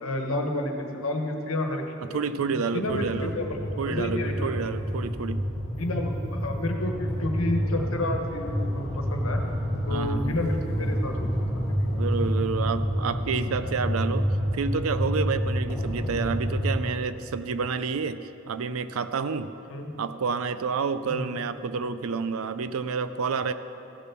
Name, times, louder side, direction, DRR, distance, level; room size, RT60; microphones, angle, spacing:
voice 1, 0.0-1.8 2.1-2.2 2.5-4.5 5.7-9.4 9.9-11.3 11.5-12.0 16.0-16.1 19.7-19.9 21.0-21.4, left 1 dB, 80° left, 3 dB, 1.3 m, -30 dB
voice 2, 2.0-3.3 3.8-5.4 9.9-10.4 11.9-14.3 14.5-19.5 20.0-23.5, right 5 dB, 75° right, 12 dB, 0.5 m, -29 dB
sound 1, 2.9-16.8, equal, 25° left, 2.9 m, -28 dB
15.0 x 6.9 x 5.9 m, 3.0 s
head